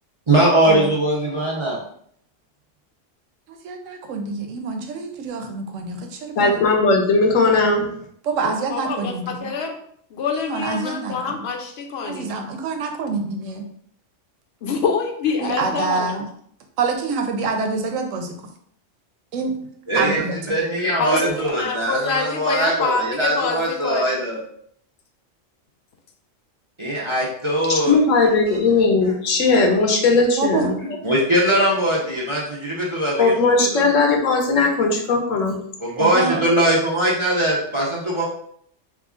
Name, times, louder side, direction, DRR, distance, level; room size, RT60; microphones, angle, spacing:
voice 1, 0.3-1.8 19.9-20.2 20.5-24.4 26.8-28.0 31.0-33.9 35.8-38.3, right 1 dB, 35° right, -5 dB, 0.5 m, -21 dB
voice 2, 3.5-6.6 8.2-9.5 10.4-11.4 12.0-13.7 15.4-16.3 16.8-18.4 19.3-19.6 19.9-20.4 21.1-21.6 30.4-30.7 36.0-36.4, right 4 dB, 85° right, 4 dB, 1.0 m, -26 dB
voice 3, 6.4-7.9 27.7-30.8 33.2-35.6, left 3 dB, 80° left, 2 dB, 1.1 m, -18 dB
voice 4, 8.7-9.8 10.1-12.3 14.6-16.2 21.0-21.2 21.6-24.2, left 5 dB, 65° left, 3 dB, 0.7 m, -25 dB
3.0 x 2.4 x 3.6 m, 0.65 s
omnidirectional pair, 1.3 m